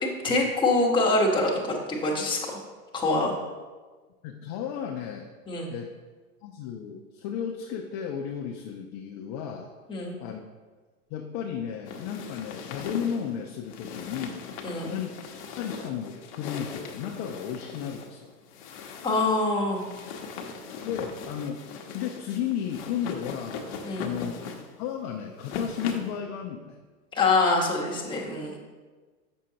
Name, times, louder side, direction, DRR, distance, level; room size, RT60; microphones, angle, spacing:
voice 1, 0.0-2.6 2.9-3.3 5.5-5.7 9.9-10.1 14.6-15.0 18.7-19.8 23.8-24.1 27.1-28.6, left 2 dB, 10° left, -3 dB, 1.1 m, -25 dB
voice 2, 4.2-5.3 5.7-5.9 6.4-9.7 10.2-10.4 11.1-14.4 14.9-15.2 15.6-18.3 20.8-21.6 21.9-23.6 24.0-24.4 24.8-26.8, left 8 dB, 35° left, 2 dB, 0.5 m, -33 dB
sound 1, 11.9-26.2, left 5 dB, 50° left, 1.0 m, -39 dB
7.4 x 6.1 x 2.8 m, 1.4 s
hypercardioid pair, 125°, 46 cm